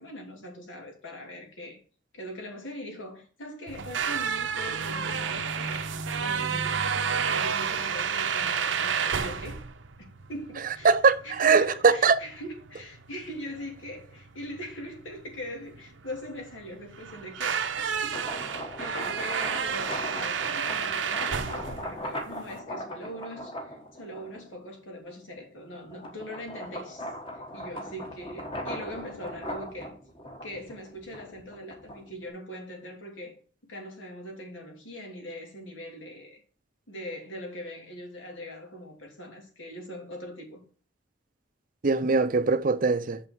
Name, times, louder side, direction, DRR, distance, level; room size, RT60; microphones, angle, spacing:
voice 1, 0.0-1.8 2.1-5.8 6.2-9.6 10.0-10.9 11.2-17.6 18.0-18.4 18.8-29.9 30.4-33.3 33.6-36.4 36.9-40.6, equal, 90° left, 2.8 m, -41 dB
sound 1, 3.7-22.6, right 6 dB, 80° right, 0.8 m, -31 dB
voice 2, 10.8-12.1 41.8-43.2, right 4 dB, 45° right, 0.5 m, -21 dB
sound 2, 17.9-24.5 25.1-32.3, equal, 25° left, 1.3 m, -39 dB
6.5 x 5.7 x 4.4 m
head